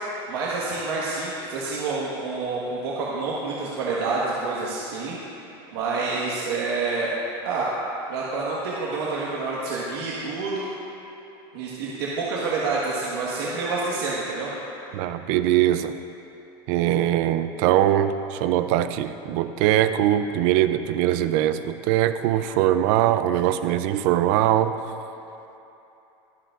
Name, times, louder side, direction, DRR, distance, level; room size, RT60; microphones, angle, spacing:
voice 1, 0.3-5.2 5.7-7.1 7.4-7.7 8.1-10.7 11.5-14.5, right 3 dB, 85° right, -6 dB, 1.5 m, -28 dB
voice 2, 14.9-16.0 16.7-24.7, right 12 dB, 55° right, 11 dB, 0.5 m, -22 dB
22.5 x 7.8 x 2.5 m, 2.9 s
supercardioid pair, 165°, 13 cm